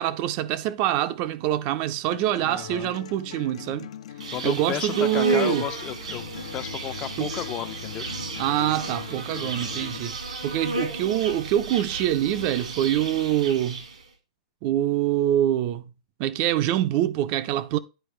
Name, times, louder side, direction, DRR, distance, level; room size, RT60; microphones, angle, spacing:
voice 1, 0.0-3.9 4.4-5.7 7.2-7.3 8.4-13.8 14.6-15.8 16.2-17.8, right 12 dB, 35° right, 0.5 m, -25 dB
sound 1, 2.1-10.1, left 10 dB, 65° left, 0.6 m, -41 dB
voice 2, 2.4-2.9 4.3-6.2 6.5-8.1, left 12 dB, 25° left, 0.5 m, -33 dB
Insect, 4.2-14.0, right 2 dB, 85° right, 2.3 m, -33 dB
10.0 x 4.3 x 3.2 m
hypercardioid pair, 155°, 4 cm